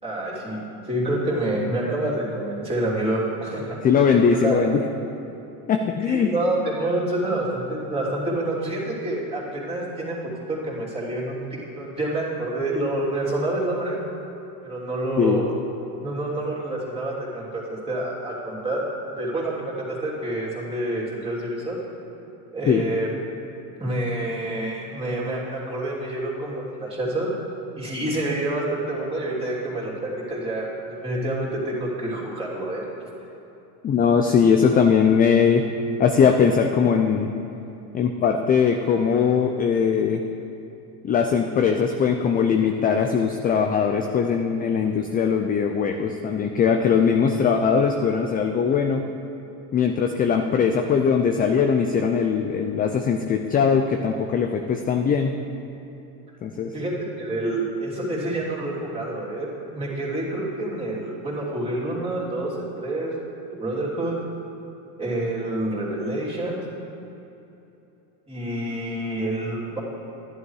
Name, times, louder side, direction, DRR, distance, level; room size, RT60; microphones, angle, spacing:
voice 1, 0.0-0.6 0.9-3.8 4.4-4.6 6.0-10.2 10.5-11.4 11.8-14.0 14.6-15.5 16.0-18.8 19.1-21.8 22.5-23.1 23.8-27.3 27.8-30.6 31.0-32.8 56.7-59.5 59.7-63.1 63.6-64.2 65.0-66.6 68.3-69.8, right 1 dB, 15° right, -6 dB, 3.0 m, -27 dB
voice 2, 3.8-4.8 5.7-6.3 15.2-15.4 22.7-22.8 33.8-35.7 36.0-37.3 37.9-40.2 41.0-49.0 49.7-55.3 56.4-56.7, left 6 dB, 20° left, 5 dB, 0.4 m, -20 dB
11.5 x 11.0 x 4.8 m, 2.9 s
supercardioid pair, 125°, 43 cm